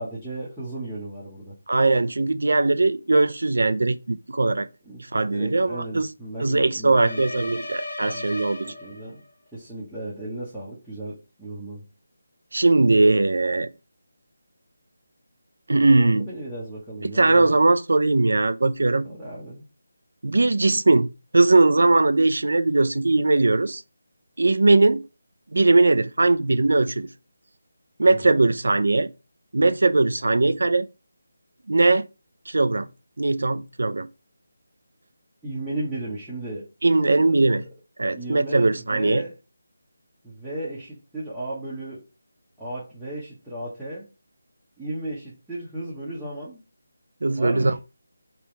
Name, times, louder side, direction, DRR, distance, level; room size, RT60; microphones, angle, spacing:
voice 1, 0.0-1.5 4.8-7.5 8.1-9.2 9.5-11.8 15.8-17.6 19.0-19.6 28.2-28.4 35.4-36.7 37.2-37.6 38.1-39.3 40.2-42.0 42.6-44.1 44.8-46.6 47.3-47.7, right 1 dB, ahead, 1.0 m, -35 dB
voice 2, 1.7-4.7 5.1-6.1 6.4-8.6 12.5-13.7 15.7-16.3 17.0-19.0 20.2-21.1 21.3-23.8 24.4-25.0 25.5-27.1 28.0-29.1 29.5-30.9 31.7-32.1 32.5-32.9 33.2-34.1 36.8-37.6 38.0-39.2 47.2-47.8, right 2 dB, 75° right, 0.5 m, -20 dB
sound 1, 6.9-9.3, left 1 dB, 80° left, 1.9 m, -35 dB
3.4 x 2.9 x 4.4 m
figure-of-eight pair, 170°, 0 cm